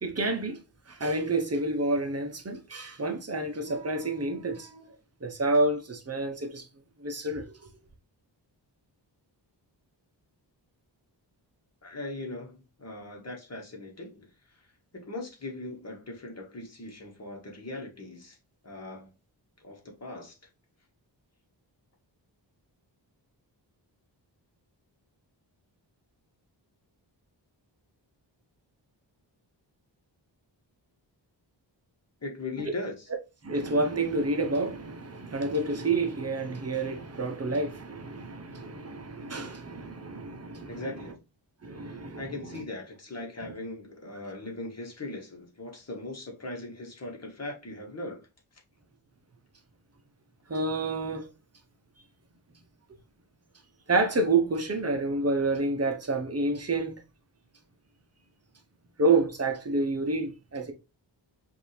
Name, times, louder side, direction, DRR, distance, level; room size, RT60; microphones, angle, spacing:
voice 1, 0.0-0.6 0.9-4.9 5.2-6.7 7.0-7.7 33.4-41.0 41.6-42.6 50.5-51.3 53.9-57.0 59.0-60.7, right 2 dB, 35° right, 0.8 m, -29 dB
voice 2, 11.8-14.3 14.5-14.6 14.9-18.4 18.6-19.1 19.6-20.4 32.2-32.9 40.7-41.1 41.8-48.2, left 2 dB, 35° left, 1.4 m, -39 dB
5.3 x 2.7 x 3.2 m
wide cardioid pair, 135°, 44 cm